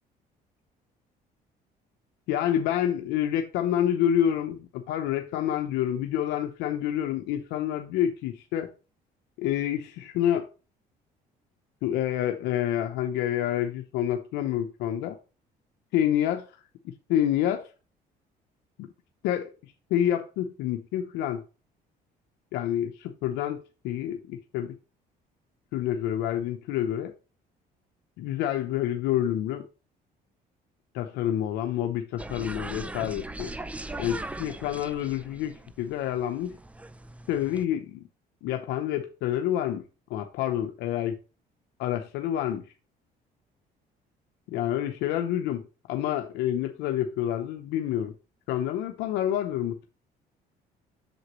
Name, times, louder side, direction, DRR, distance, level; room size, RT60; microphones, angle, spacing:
voice 1, 2.3-8.7 9.4-10.5 11.8-15.2 15.9-16.5 17.1-17.7 18.8-18.9 19.2-19.5 19.9-21.4 22.5-24.7 25.7-27.1 28.2-29.7 30.9-33.5 34.0-36.6 37.3-38.1 38.4-39.8 40.1-41.2 41.8-42.6 44.5-48.1 48.5-49.9, left 11 dB, 90° left, 0.8 m, -28 dB
sound 1, 32.2-37.7, right 2 dB, 10° right, 0.5 m, -40 dB
7.9 x 6.9 x 3.1 m
cardioid pair, 110°, 17 cm